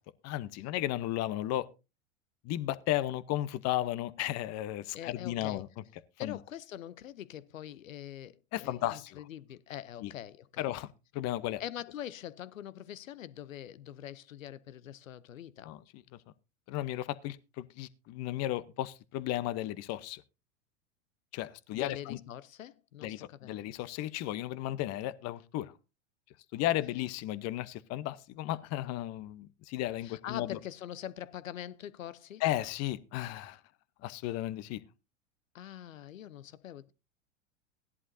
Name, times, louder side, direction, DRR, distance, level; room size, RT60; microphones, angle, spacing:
voice 1, 0.2-1.7 2.4-5.8 6.2-6.4 8.5-9.2 10.0-10.1 10.6-10.9 11.1-11.6 15.6-16.0 16.7-20.2 21.3-22.2 23.0-25.7 26.5-30.6 32.4-33.6 34.0-34.8, left 14 dB, 40° left, 0.8 m, -34 dB
voice 2, 4.9-5.6 6.2-10.7 11.6-15.7 21.7-23.6 30.0-32.4 35.5-36.9, left 11 dB, 85° left, 0.7 m, -43 dB
16.5 x 11.0 x 2.7 m
hypercardioid pair, 95°, 39 cm